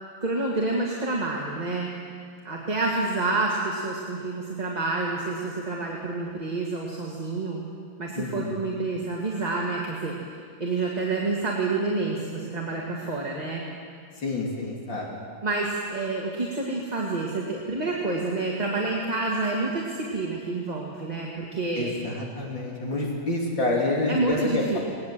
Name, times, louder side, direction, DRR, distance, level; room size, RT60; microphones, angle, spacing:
voice 1, 0.2-1.9 2.4-7.6 8.0-13.6 15.4-21.9 24.1-24.8, right 3 dB, 20° right, -3 dB, 2.1 m, -28 dB
voice 2, 8.2-8.5 14.2-15.2 21.7-24.8, left 2 dB, 80° left, -2 dB, 3.6 m, -28 dB
19.5 x 19.5 x 7.7 m, 2.2 s
omnidirectional pair, 2.0 m